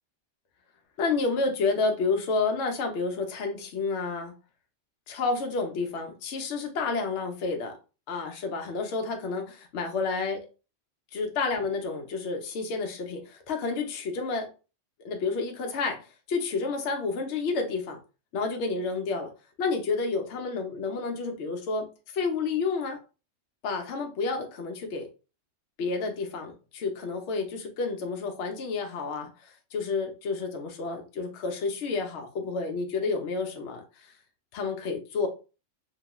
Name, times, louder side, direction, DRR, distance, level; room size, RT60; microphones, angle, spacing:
voice 1, 1.0-4.3 5.1-7.8 8.1-10.5 11.1-14.5 15.0-18.0 18.3-19.3 19.6-23.0 23.6-25.1 25.8-34.1 34.5-35.3, left 4 dB, 70° left, 3 dB, 0.8 m, -30 dB
2.9 x 2.2 x 2.9 m, 0.32 s
omnidirectional pair, 1.3 m